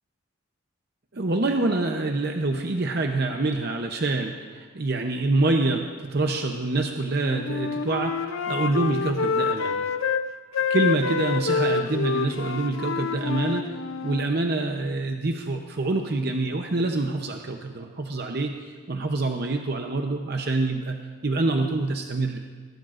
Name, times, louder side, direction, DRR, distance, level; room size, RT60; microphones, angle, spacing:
voice 1, 1.1-9.8 10.7-13.7 14.0-22.4, right 2 dB, 50° right, 3 dB, 0.7 m, -26 dB
Wind instrument woodwind instrument, 7.1-10.2 10.5-14.3, left 5 dB, 70° left, 0.6 m, -27 dB
19.5 x 16.0 x 2.5 m, 1.5 s
head